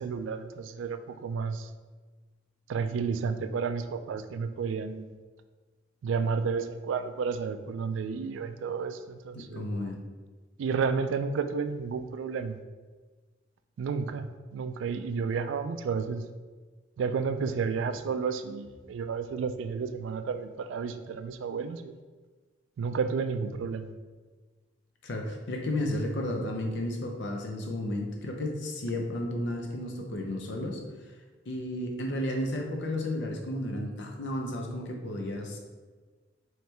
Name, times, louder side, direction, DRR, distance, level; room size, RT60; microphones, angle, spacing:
voice 1, 0.0-1.7 2.7-5.1 6.0-9.9 10.6-12.6 13.8-16.2 17.0-21.9 22.8-23.9, right 5 dB, 70° right, 10 dB, 0.3 m, -31 dB
voice 2, 9.3-10.0 25.0-30.8 31.5-35.6, left 1 dB, 65° left, 2 dB, 0.6 m, -33 dB
4.5 x 3.2 x 3.3 m, 1.4 s
head